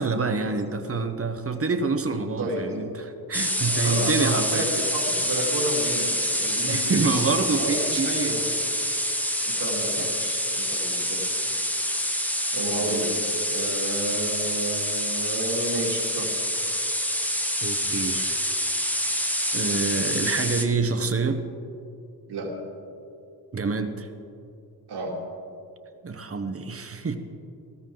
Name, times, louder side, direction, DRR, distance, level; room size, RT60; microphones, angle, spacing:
voice 1, 0.0-4.7 6.7-8.6 10.0-10.1 12.5-13.2 17.6-18.4 19.5-21.4 23.5-24.1 26.0-27.2, right 4 dB, 35° right, 8 dB, 1.0 m, -27 dB
sound 1, 3.3-20.7, equal, 5° left, 1.1 m, -27 dB
voice 2, 3.6-7.2 7.5-8.4 9.4-11.5 12.5-13.1 13.4-16.5 22.3-22.5 24.9-25.2, right 1 dB, 80° right, -2 dB, 2.8 m, -31 dB
18.5 x 15.0 x 3.9 m, 2.5 s
wide cardioid pair, 110°, 39 cm